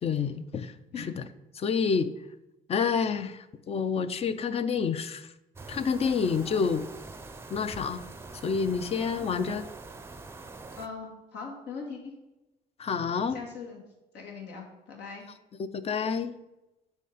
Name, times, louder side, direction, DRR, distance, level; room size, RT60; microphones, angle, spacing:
voice 1, 0.0-1.0 1.6-2.1 2.7-5.3 5.7-6.8 7.5-8.0 8.4-9.7 12.8-13.4 15.8-16.4, left 6 dB, 35° left, 12 dB, 0.6 m, -28 dB
sound 1, 5.5-10.9, right 3 dB, 15° right, 0.6 m, -44 dB
voice 2, 10.8-12.1 13.3-13.8 14.1-15.2, left 5 dB, 80° left, 0 dB, 1.9 m, -40 dB
8.2 x 4.7 x 5.0 m, 0.96 s
cardioid pair, 110°, 17 cm